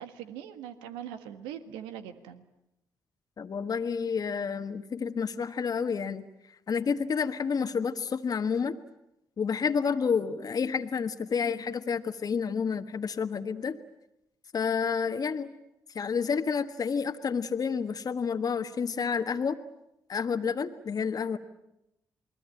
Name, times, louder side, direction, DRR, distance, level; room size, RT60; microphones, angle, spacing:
voice 1, 0.0-2.4, right 10 dB, 85° right, 9 dB, 1.6 m, -41 dB
voice 2, 3.4-6.3 6.7-8.8 9.4-13.8 14.5-15.5 15.9-19.6 20.1-21.4, left 6 dB, 50° left, 7 dB, 1.5 m, -29 dB
28.5 x 20.5 x 9.0 m, 0.86 s
hypercardioid pair, 45°, 8 cm